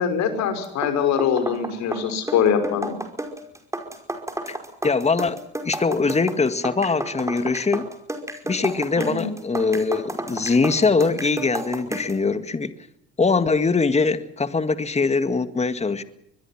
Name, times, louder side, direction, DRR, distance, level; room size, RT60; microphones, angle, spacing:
voice 1, 0.0-3.0 9.0-9.3, left 7 dB, 65° left, 5.7 m, -23 dB
sound 1, 0.6-12.2, right 1 dB, 10° right, 5.2 m, -32 dB
voice 2, 4.8-5.4 5.6-7.9 8.5-12.7 13.2-16.0, left 4 dB, 20° left, 2.0 m, -22 dB
24.5 x 21.5 x 5.9 m
supercardioid pair, 75°, 30 cm